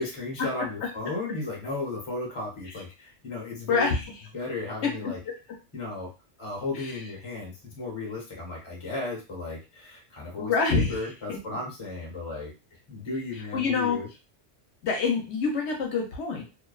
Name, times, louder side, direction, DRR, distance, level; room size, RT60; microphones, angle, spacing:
voice 1, 0.0-4.0 4.3-5.2 5.7-6.1 6.4-12.5 12.9-14.1, left 2 dB, 30° left, -1 dB, 0.8 m, -34 dB
voice 2, 3.7-4.0 4.8-5.3 6.7-6.9 10.4-11.0 11.3-11.4 13.3-14.0 14.8-16.4, left 4 dB, 75° left, 1 dB, 0.9 m, -26 dB
2.6 x 2.1 x 2.2 m, 0.29 s
omnidirectional pair, 1.2 m